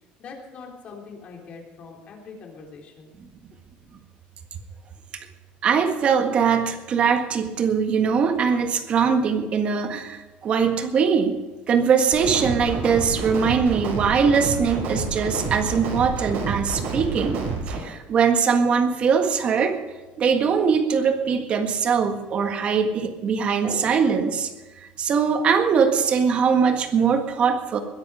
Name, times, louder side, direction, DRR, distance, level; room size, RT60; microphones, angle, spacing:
voice 1, 0.2-3.2 3.5-3.6, left 4 dB, 35° left, 0 dB, 3.6 m, -42 dB
voice 2, 5.6-11.4 11.7-17.4 17.7-19.8 20.2-24.5 24.8-27.8, right 6 dB, 35° right, 6 dB, 1.7 m, -21 dB
sound 1, 12.1-17.8, right 4 dB, 60° right, 5.3 m, -29 dB
21.0 x 11.0 x 5.0 m, 1.2 s
cardioid pair, 160°, 3 cm